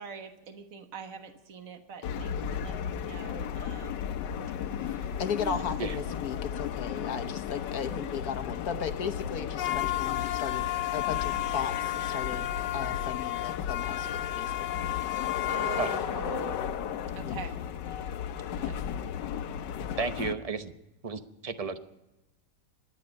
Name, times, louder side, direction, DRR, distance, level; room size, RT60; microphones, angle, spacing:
voice 1, 0.0-4.1 4.8-5.1 5.4-5.7 15.5-16.6 17.2-17.6 18.5-18.8, right 6 dB, 55° right, 6 dB, 1.8 m, -43 dB
sound 1, 2.0-20.3, left 10 dB, 85° left, 1.4 m, -33 dB
voice 2, 5.2-12.5 12.7-14.7 17.2-17.4, left 7 dB, 65° left, 9 dB, 1.3 m, -36 dB
voice 3, 20.0-20.7 21.0-21.8, right 4 dB, 35° right, 9 dB, 0.6 m, -33 dB
26.0 x 10.5 x 5.2 m, 0.96 s
omnidirectional pair, 1.8 m